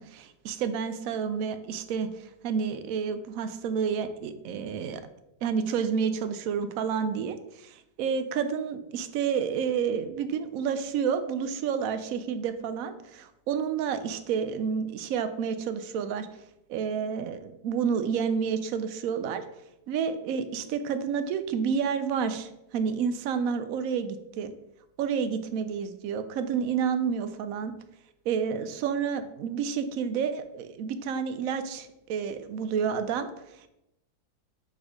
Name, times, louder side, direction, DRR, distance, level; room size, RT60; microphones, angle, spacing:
voice 1, 0.0-5.0 5.4-16.3 16.7-19.4 19.9-24.5 25.0-27.7 28.3-33.3 33.6-33.7, right 7 dB, 70° right, 10 dB, 0.8 m, -30 dB
4.6 x 4.4 x 4.8 m, 0.87 s
omnidirectional pair, 1.8 m